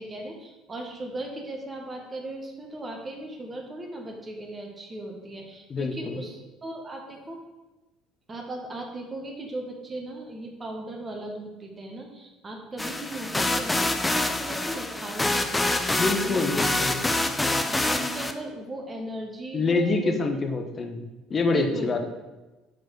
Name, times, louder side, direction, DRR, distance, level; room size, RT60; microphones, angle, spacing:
voice 1, 0.0-7.4 8.3-16.8 17.4-20.2 21.5-22.0, right 1 dB, 25° right, 1 dB, 1.2 m, -37 dB
voice 2, 5.7-6.2 16.0-17.0 19.5-22.1, left 3 dB, 35° left, 4 dB, 0.9 m, -26 dB
sound 1, 12.8-18.3, left 2 dB, 15° left, 0.6 m, -26 dB
4.7 x 4.5 x 5.9 m, 1.1 s
figure-of-eight pair, 60°, 0 cm